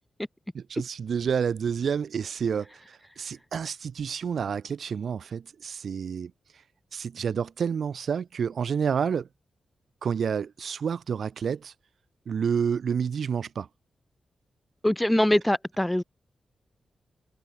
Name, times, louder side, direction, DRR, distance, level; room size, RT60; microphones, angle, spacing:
voice 1, 0.5-2.7 3.2-6.3 6.9-9.3 10.0-11.7 12.3-13.7, right 7 dB, 60° right, 4.6 m, -29 dB
voice 2, 14.8-16.0, left 1 dB, 5° left, 2.4 m, -23 dB
wide cardioid pair, 150°, 0 cm